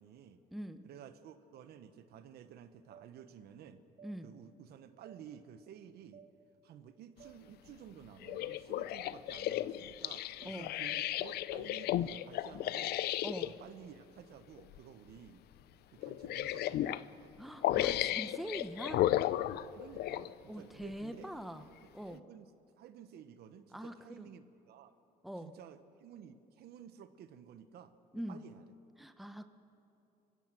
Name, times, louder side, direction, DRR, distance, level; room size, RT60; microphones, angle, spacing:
voice 1, 0.0-0.4 0.8-3.8 4.2-6.2 6.6-13.0 13.4-15.4 15.7-17.5 18.0-18.3 19.5-21.3 22.0-22.5 22.8-24.9 25.4-27.9 28.3-28.6, right 9 dB, 70° right, 11 dB, 1.1 m, -53 dB
voice 2, 0.5-0.8 4.0-4.3 10.4-10.7 13.2-13.5 17.4-19.0 20.5-21.6 21.9-22.2 23.7-24.3 25.2-25.5 28.1-28.4 29.0-29.4, equal, ahead, 9 dB, 1.0 m, -43 dB
sound 1, 2.9-3.1 4.0-4.1 5.0-5.2 6.1-6.3 7.2-7.3 8.3-8.4 9.3-9.5 10.4-10.6, right 8 dB, 55° right, 2.1 m, -54 dB
sound 2, 8.2-13.5 14.6-14.8 15.2-15.3 16.0-17.0 17.6-20.3 20.9-21.0, left 14 dB, 70° left, 0.6 m, -34 dB
25.5 x 15.5 x 7.8 m, 3.0 s
cardioid pair, 110°, 17 cm